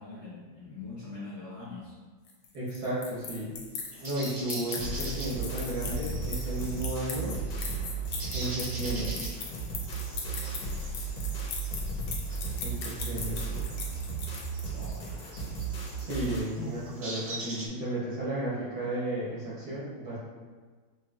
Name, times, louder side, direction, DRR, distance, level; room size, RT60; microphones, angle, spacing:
voice 1, 0.0-2.0 14.7-15.0 16.6-16.7, left 4 dB, 50° left, -11 dB, 0.9 m, -42 dB
sound 1, 2.3-14.9, left 5 dB, 90° left, 1.5 m, -39 dB
voice 2, 2.5-3.6 4.0-7.4 8.3-9.1 12.6-13.7 16.0-20.2, right 1 dB, 60° right, -8 dB, 1.2 m, -34 dB
sound 2, 3.9-17.7, right 2 dB, 85° right, 2.0 m, -44 dB
sound 3, 4.8-16.5, right 4 dB, 65° left, 1.2 m, -35 dB
4.6 x 3.0 x 2.3 m, 1.4 s
omnidirectional pair, 2.4 m